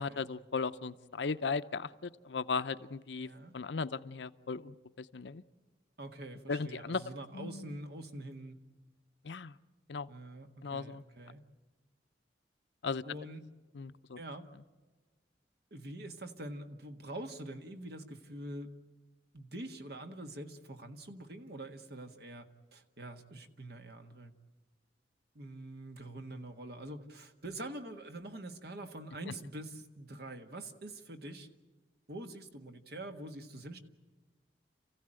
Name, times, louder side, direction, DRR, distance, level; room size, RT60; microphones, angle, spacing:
voice 1, 0.0-5.4 6.5-7.0 7.3-7.8 9.2-9.5 9.9-10.1 10.6-11.0 12.8-13.0 13.7-14.2 29.3-29.4, left 4 dB, 80° left, 13 dB, 0.7 m, -37 dB
voice 2, 3.2-3.5 6.0-8.6 10.1-11.4 13.0-13.4 14.2-14.5 15.7-18.7 19.3-24.3 25.3-31.5 32.1-33.8, right 1 dB, 60° right, 6 dB, 1.6 m, -45 dB
28.5 x 15.5 x 8.9 m, 1.3 s
head